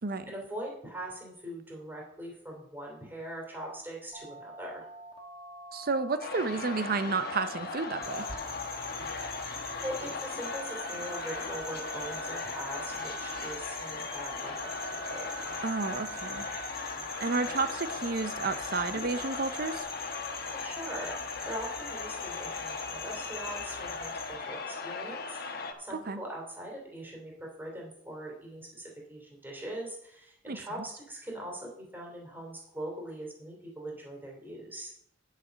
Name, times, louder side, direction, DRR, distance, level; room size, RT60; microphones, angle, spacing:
voice 1, 0.3-4.9 9.8-14.8 15.1-15.3 20.5-34.9, right 1 dB, 10° right, -2 dB, 2.9 m, -41 dB
Telephone, 4.1-19.8, right 4 dB, 30° right, 1.3 m, -47 dB
voice 2, 5.7-8.3 15.6-16.5 17.2-19.9 25.9-26.2 30.5-30.6, right 4 dB, 50° right, 12 dB, 0.6 m, -31 dB
sound 1, 6.2-25.7, left 4 dB, 50° left, 1.3 m, -38 dB
sound 2, 8.0-24.3, left 3 dB, 15° left, 2.4 m, -44 dB
9.9 x 7.6 x 5.2 m, 0.72 s
head